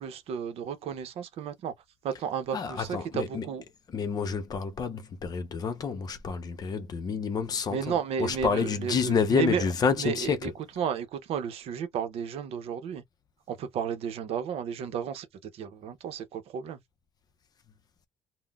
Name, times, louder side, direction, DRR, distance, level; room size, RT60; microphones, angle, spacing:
voice 1, 0.0-1.7 2.0-3.6 7.7-9.6 10.0-10.5 10.8-13.0 13.5-15.3 15.5-16.8, right 7 dB, 70° right, 0.6 m, -33 dB
voice 2, 2.5-3.5 3.9-10.5, left 6 dB, 40° left, 0.5 m, -29 dB
3.7 x 2.0 x 2.3 m
cardioid pair, 135°, 11 cm